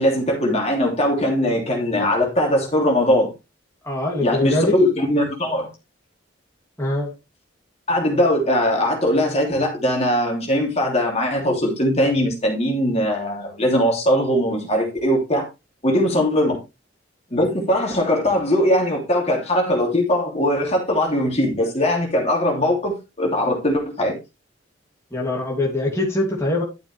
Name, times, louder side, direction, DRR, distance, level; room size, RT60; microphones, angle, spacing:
voice 1, 0.0-3.3 4.2-5.7 7.9-15.4 15.8-16.6 17.3-24.1, left 1 dB, 35° left, 3.1 m, -20 dB
voice 2, 3.8-4.8 6.8-7.1 25.1-26.6, left 2 dB, 15° left, 2.9 m, -22 dB
12.0 x 6.9 x 3.4 m
head